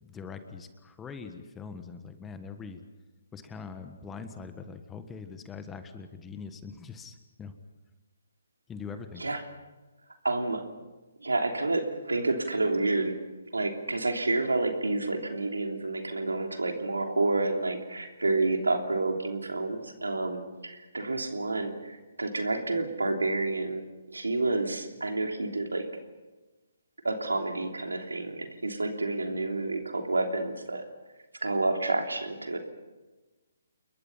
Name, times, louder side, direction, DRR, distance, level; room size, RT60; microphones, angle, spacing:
voice 1, 0.0-2.8 3.3-7.5 8.7-9.2, left 5 dB, 10° left, 8 dB, 1.5 m, -42 dB
voice 2, 10.2-10.6 11.2-13.1 13.5-23.8 24.1-25.8 27.0-30.8 31.4-32.6, right 2 dB, 90° right, 4 dB, 3.1 m, -29 dB
29.0 x 22.0 x 5.7 m, 1.2 s
figure-of-eight pair, 140°, 0 cm